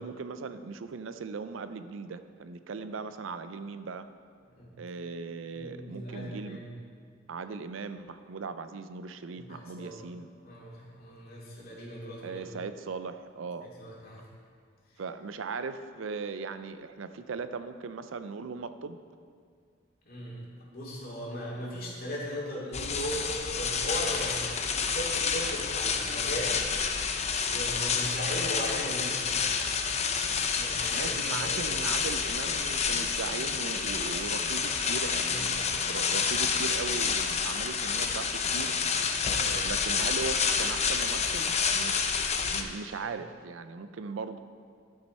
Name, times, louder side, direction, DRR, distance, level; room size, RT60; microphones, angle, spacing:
voice 1, 0.0-4.1 4.8-6.6 7.3-10.3 12.2-13.7 15.0-19.0 30.9-39.0 39.3-44.4, right 4 dB, 80° right, 11 dB, 0.5 m, -38 dB
voice 2, 5.5-6.7 9.3-10.0 10.4-12.4 13.6-14.2 20.1-24.4 24.8-26.6 27.4-29.5 30.0-30.2 30.5-31.7 35.3-35.4 39.2-39.4 43.0-43.1, equal, 50° left, -5 dB, 2.4 m, -38 dB
sound 1, 22.7-42.6, left 6 dB, 35° left, 0.5 m, -29 dB
12.0 x 6.2 x 4.3 m, 2.1 s
head